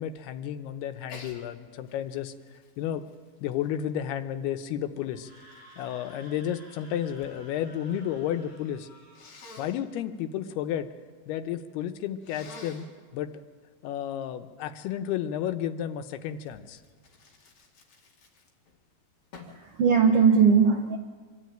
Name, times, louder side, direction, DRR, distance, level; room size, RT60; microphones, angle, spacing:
voice 1, 0.0-2.3 2.8-3.0 3.4-5.3 5.8-8.9 9.6-10.9 11.3-12.9 13.1-13.3 13.8-16.8, left 10 dB, 85° left, 9 dB, 2.9 m, -32 dB
Sneeze, 1.1-1.4 1.9-4.2 4.9-7.4 7.6-8.3 9.1-9.8 12.2-12.9 16.5-18.7 19.3-19.7, left 3 dB, 50° left, 3.3 m, -49 dB
Screaming, 5.1-9.4, equal, 20° left, 7.5 m, -53 dB
voice 2, 19.4-21.0, right 6 dB, 70° right, 3 dB, 1.4 m, -20 dB
25.5 x 12.5 x 9.1 m, 1.5 s
omnidirectional pair, 4.5 m